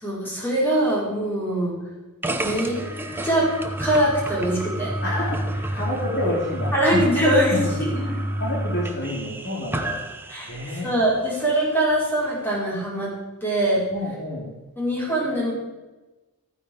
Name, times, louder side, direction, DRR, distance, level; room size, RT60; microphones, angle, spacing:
voice 1, 0.0-1.8 2.4-2.7 3.2-3.5 3.8-4.9 6.7-7.6 7.9-8.0 10.3-10.5 10.8-13.1 13.4-13.8 14.8-15.5, right 1 dB, 10° left, -7 dB, 5.3 m, -22 dB
sound 1, 2.2-11.0, right 1 dB, 10° right, 0.8 m, -29 dB
voice 2, 5.0-10.0 10.5-10.9 13.9-14.5, left 1 dB, 50° left, -4 dB, 2.8 m, -29 dB
14.0 x 9.6 x 4.9 m, 1.1 s
head